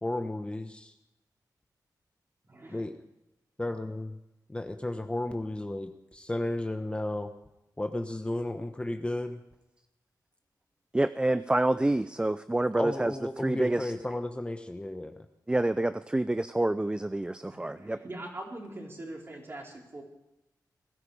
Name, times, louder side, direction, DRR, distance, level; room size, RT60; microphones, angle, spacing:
voice 1, 0.0-0.9 2.7-2.9 3.6-4.2 4.5-7.3 7.8-9.4 12.8-15.3, left 1 dB, 15° left, 7 dB, 1.0 m, -33 dB
voice 2, 2.5-2.8 17.5-20.0, right 1 dB, 35° right, -1 dB, 4.4 m, -42 dB
voice 3, 10.9-13.1 13.4-13.9 15.5-18.0, right 1 dB, 15° right, 13 dB, 0.4 m, -27 dB
20.5 x 13.0 x 5.0 m, 0.92 s
wide cardioid pair, 100°, 7 cm